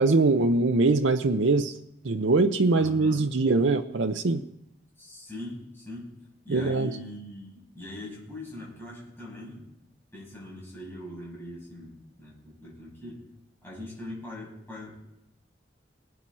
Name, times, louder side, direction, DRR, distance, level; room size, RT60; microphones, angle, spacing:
voice 1, 0.0-1.7 2.0-4.4 6.5-7.0, right 3 dB, 90° right, 6 dB, 0.7 m, -22 dB
voice 2, 2.7-3.3 5.0-6.1 6.4-9.7 10.1-13.2 13.6-14.9, left 1 dB, 10° left, -6 dB, 6.9 m, -41 dB
21.5 x 9.0 x 4.3 m, 0.85 s
head